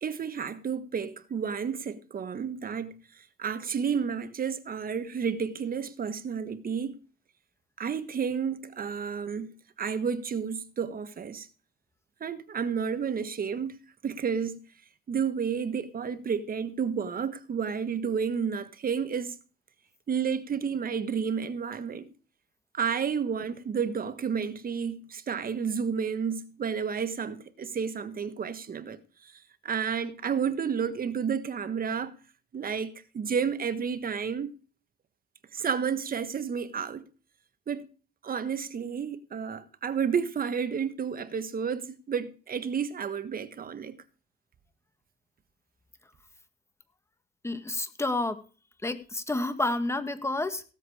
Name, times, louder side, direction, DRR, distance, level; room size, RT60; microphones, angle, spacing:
voice 1, 0.0-7.0 7.8-11.5 12.2-13.7 14.0-14.6 15.1-19.3 20.1-22.1 22.7-32.1 32.5-34.5 35.5-37.0 37.7-37.8 38.2-43.9, right 6 dB, 45° right, 1.5 m, -31 dB
voice 2, 47.4-48.4 48.8-50.6, left 2 dB, 15° left, 1.7 m, -29 dB
17.0 x 7.7 x 4.9 m
cardioid pair, 90°, 20 cm